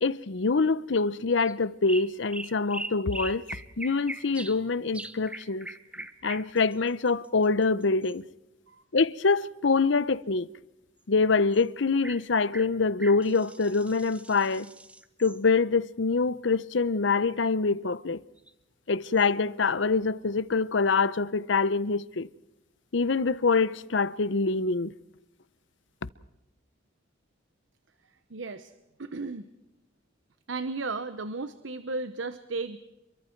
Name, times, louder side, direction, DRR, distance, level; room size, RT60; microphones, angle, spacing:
voice 1, 0.0-3.4 3.8-5.7 6.2-8.2 8.9-10.5 11.1-14.7 15.2-18.2 18.9-22.3 22.9-24.9, left 4 dB, 70° left, 0.8 m, -25 dB
sound 1, 1.3-1.5 1.9-4.6 4.9-8.2 11.5-11.6 12.0-12.2 12.5-15.4 18.4-18.5 19.2-19.3, right 2 dB, 5° right, 1.1 m, -41 dB
voice 2, 28.1-28.7 29.0-29.5 30.5-32.8, right 3 dB, 75° right, 1.0 m, -34 dB
29.0 x 23.0 x 4.6 m
head